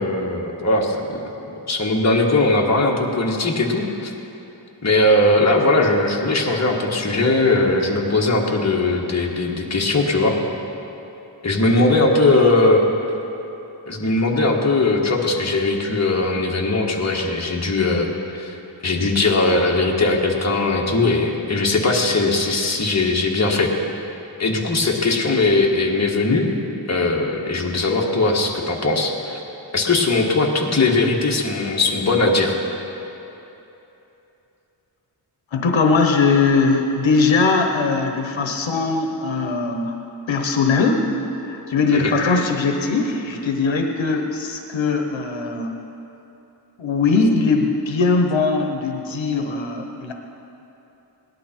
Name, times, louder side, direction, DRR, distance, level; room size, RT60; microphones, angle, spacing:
voice 1, 0.0-4.1 4.8-10.4 11.4-12.8 13.9-18.5 18.8-23.7 24.4-26.5 26.9-29.4 29.7-32.6 41.9-42.1, left 2 dB, 35° left, -1 dB, 1.6 m, -19 dB
voice 2, 35.5-39.9 40.3-41.0 41.5-45.8 46.8-50.1, left 4 dB, 80° left, 3 dB, 1.0 m, -20 dB
18.5 x 11.5 x 4.5 m, 3.0 s
wide cardioid pair, 90°, 45 cm